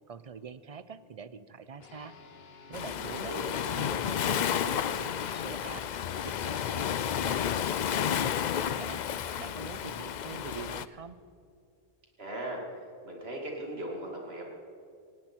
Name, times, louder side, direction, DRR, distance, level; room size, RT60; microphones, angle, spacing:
voice 1, 0.1-2.1 2.7-3.4 3.7-11.2, right 6 dB, 45° right, 14 dB, 0.6 m, -45 dB
sound 1, 1.8-11.5, left 5 dB, 75° left, 1.2 m, -53 dB
Waves surf, 2.7-10.9, left 9 dB, 55° left, 0.6 m, -31 dB
voice 2, 3.1-3.5 12.2-12.6 13.0-14.4, right 1 dB, 80° right, 0 dB, 2.9 m, -38 dB
18.5 x 17.0 x 4.5 m, 2.4 s
omnidirectional pair, 1.0 m